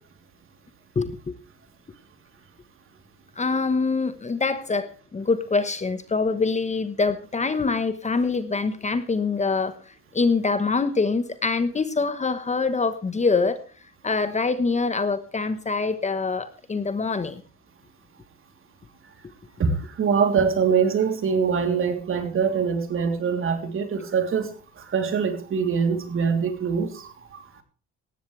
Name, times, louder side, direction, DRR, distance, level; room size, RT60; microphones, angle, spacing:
voice 1, 0.9-1.3 3.4-9.8 10.1-13.6 14.0-17.4, left 4 dB, 25° left, 12 dB, 1.2 m, -24 dB
voice 2, 19.6-27.6, right 6 dB, 45° right, 6 dB, 3.3 m, -24 dB
18.0 x 14.0 x 3.3 m, 0.38 s
cardioid pair, 100°, 29 cm